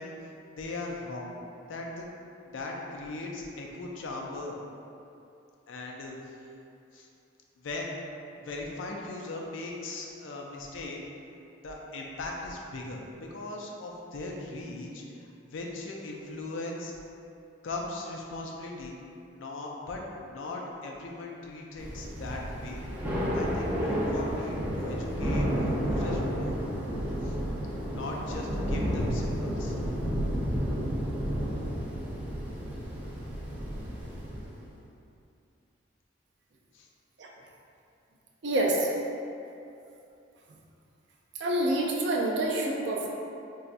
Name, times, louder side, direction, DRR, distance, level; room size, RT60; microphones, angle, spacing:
voice 1, 0.0-1.3 1.7-2.1 2.4-4.6 5.7-6.5 6.9-7.1 7.6-8.0 8.4-11.0 11.6-16.9 17.6-19.0 19.3-22.8 23.3-26.6 27.2-27.4 27.9-29.7 36.7-36.9, left 2 dB, 80° left, -1 dB, 0.4 m, -39 dB
Thunder / Rain, 21.8-34.7, equal, 10° right, 0.5 m, -31 dB
voice 2, 38.4-38.9 41.4-43.1, right 1 dB, 60° right, -1 dB, 0.4 m, -27 dB
4.1 x 2.3 x 2.5 m, 2.7 s
head